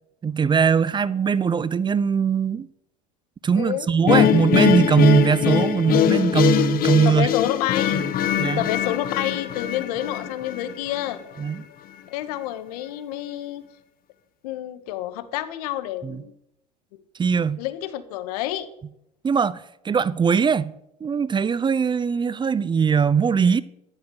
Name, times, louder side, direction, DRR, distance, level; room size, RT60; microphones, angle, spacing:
voice 1, 0.2-2.7 3.4-7.3 7.9-8.0 8.4-8.6 11.4-11.6 16.0-16.2 17.2-17.6 19.2-20.7 21.0-23.6, right 6 dB, 25° right, 0.7 m, -20 dB
voice 2, 3.6-3.9 7.1-8.0 8.6-11.2 12.1-13.6 14.4-16.3 17.6-18.7, left 13 dB, 75° left, 1.7 m, -28 dB
sound 1, 4.1-11.2, left 10 dB, 45° left, 1.5 m, -22 dB
14.0 x 11.5 x 8.0 m
hypercardioid pair, 85°, 20 cm